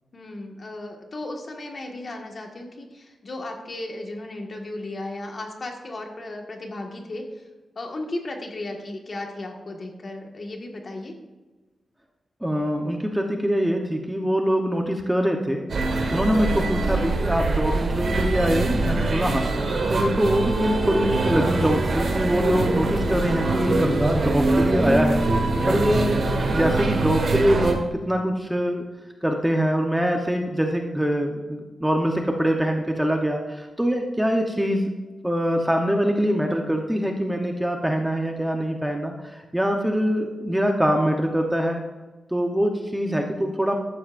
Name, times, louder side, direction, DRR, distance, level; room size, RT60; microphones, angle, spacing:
voice 1, 0.1-7.4 7.7-11.1, left 2 dB, 40° left, 2 dB, 1.7 m, -35 dB
voice 2, 12.4-15.6 16.1-19.5 19.9-25.2 25.7-26.2 26.5-28.8 29.2-34.9 35.2-41.8 42.3-43.7, equal, 5° right, 2 dB, 0.9 m, -23 dB
sound 1, 15.7-27.7, right 2 dB, 50° right, 1.8 m, -23 dB
14.0 x 12.0 x 2.6 m, 1.2 s
wide cardioid pair, 140°, 0 cm